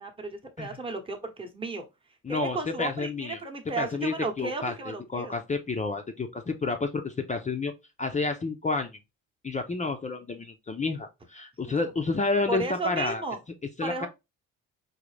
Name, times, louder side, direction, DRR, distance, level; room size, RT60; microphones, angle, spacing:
voice 1, 0.0-1.8 2.3-5.4 11.7-11.8 12.5-13.4 13.8-14.1, right 3 dB, 15° right, 1.0 m, -34 dB
voice 2, 2.2-3.4 3.8-7.7 8.0-8.9 9.4-13.2 13.8-14.1, left 3 dB, 20° left, 0.5 m, -30 dB
3.9 x 2.7 x 3.2 m
cardioid pair, 85°, 33 cm